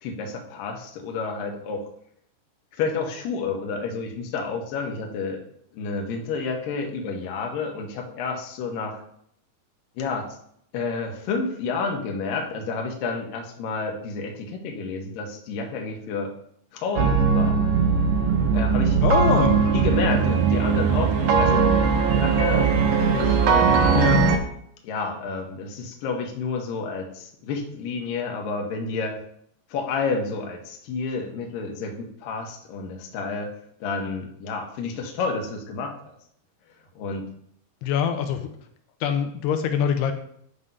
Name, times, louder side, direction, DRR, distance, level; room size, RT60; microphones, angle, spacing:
voice 1, 0.0-1.9 2.8-5.4 5.7-9.0 10.0-10.4 10.7-16.3 16.7-17.6 18.5-19.0 19.7-24.1 24.8-29.2 29.7-33.5 33.8-35.9 37.0-37.2, left 4 dB, 70° left, 2 dB, 2.3 m, -30 dB
sound 1, 17.0-24.4, right 5 dB, 85° right, 1.9 m, -20 dB
voice 2, 19.0-19.7 23.9-24.3 37.8-38.5 39.0-40.1, left 8 dB, 85° left, 6 dB, 2.6 m, -24 dB
9.9 x 3.4 x 5.4 m, 0.68 s
omnidirectional pair, 4.9 m